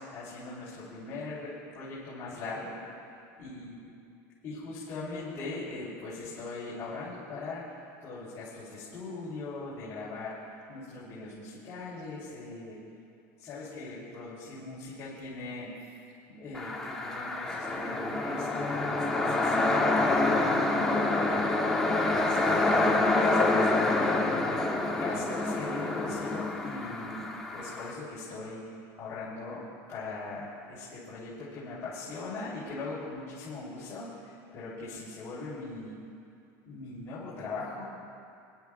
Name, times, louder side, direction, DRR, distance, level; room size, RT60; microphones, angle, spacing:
voice 1, 0.1-2.8 3.4-3.8 4.4-7.6 8.0-10.4 10.7-12.8 13.4-15.7 16.3-20.1 20.5-24.4 24.9-28.6 29.0-29.6 29.9-35.9 36.7-37.8, left 3 dB, 35° left, -10 dB, 3.7 m, -40 dB
sound 1, 16.5-27.9, left 2 dB, 5° left, 1.2 m, -27 dB
26.5 x 12.0 x 2.4 m, 2.5 s
supercardioid pair, 145°, 8 cm